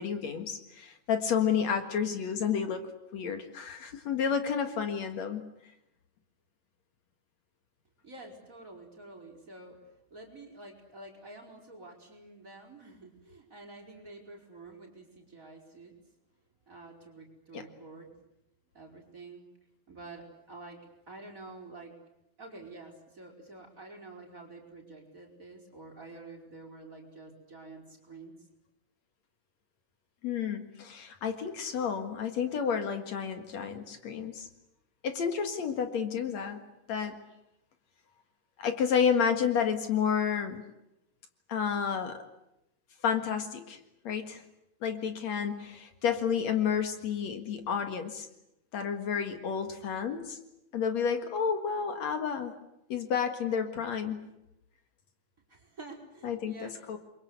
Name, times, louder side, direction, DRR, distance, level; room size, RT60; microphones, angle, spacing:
voice 1, 0.0-5.4 17.5-17.6 30.2-34.5 35.0-36.6 36.9-37.2 38.6-40.6 41.5-42.2 43.0-43.8 44.0-44.4 44.8-48.3 48.7-50.4 50.7-52.5 52.9-54.2 56.2-57.0, left 7 dB, 65° left, 7 dB, 3.0 m, -30 dB
voice 2, 8.0-15.9 16.7-18.2 18.7-19.5 19.9-20.8 21.1-21.9 22.4-28.5 55.5-57.0, right 2 dB, 25° right, 1 dB, 5.5 m, -49 dB
28.5 x 23.5 x 8.2 m, 0.86 s
omnidirectional pair, 3.3 m